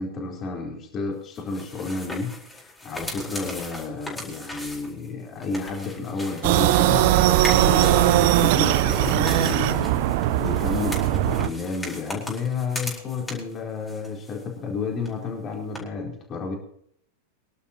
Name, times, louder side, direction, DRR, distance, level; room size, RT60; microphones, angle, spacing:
voice 1, 0.0-9.9 10.4-16.6, left 4 dB, 30° left, 0 dB, 4.2 m, -31 dB
sound 1, 1.4-6.9 7.3-13.6 13.9-14.7 15.0-15.1 15.8-15.9, left 2 dB, 10° left, 4.4 m, -37 dB
sound 2, 6.4-11.5, right 13 dB, 50° right, 0.7 m, -20 dB
24.0 x 11.5 x 3.0 m, 0.67 s
figure-of-eight pair, 90°, 0 cm